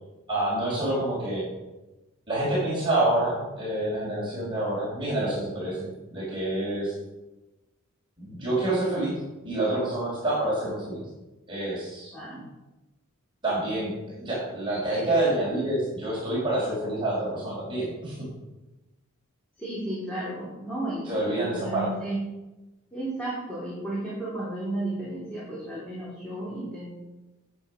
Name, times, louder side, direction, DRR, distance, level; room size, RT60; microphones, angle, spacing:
voice 1, 0.3-1.4 2.3-6.9 8.2-11.0 11.5-12.1 13.4-18.3 21.0-21.9, right 1 dB, 25° right, -7 dB, 4.6 m, -27 dB
voice 2, 12.1-12.4 19.6-22.2 22.9-27.0, right 1 dB, 5° left, -9 dB, 3.0 m, -33 dB
8.9 x 8.9 x 5.8 m, 1.0 s
head